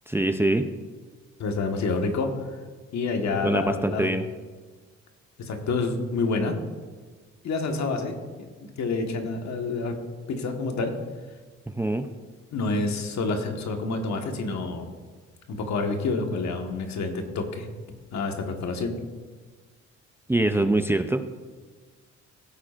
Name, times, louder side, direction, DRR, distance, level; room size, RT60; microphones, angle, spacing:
voice 1, 0.1-0.6 3.4-4.2 11.7-12.1 20.3-21.3, right 2 dB, 10° right, 8 dB, 0.5 m, -24 dB
voice 2, 1.4-2.3 2.9-4.1 5.4-6.6 7.4-8.5 8.8-10.0 10.3-10.9 12.5-14.9 15.5-17.7 18.1-19.0, left 3 dB, 65° left, 4 dB, 1.5 m, -28 dB
16.0 x 8.5 x 2.5 m, 1.4 s
cardioid pair, 90°, 30 cm